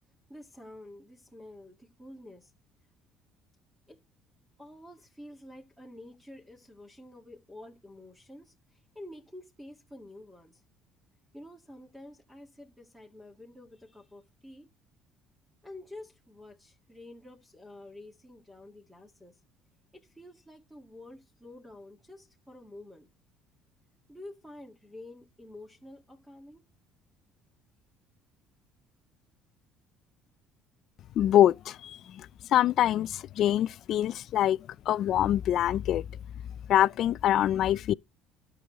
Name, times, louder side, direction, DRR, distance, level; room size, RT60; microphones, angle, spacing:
voice 1, 0.3-2.5 3.9-4.0 4.6-10.6 11.3-14.7 15.6-19.4 19.9-23.1 24.1-26.6, left 1 dB, 5° right, 1.9 m, -49 dB
voice 2, 31.2-34.6 34.9-36.0 36.7-37.9, left 12 dB, 55° left, 0.4 m, -25 dB
13.0 x 6.2 x 3.0 m
cardioid pair, 125°, 0 cm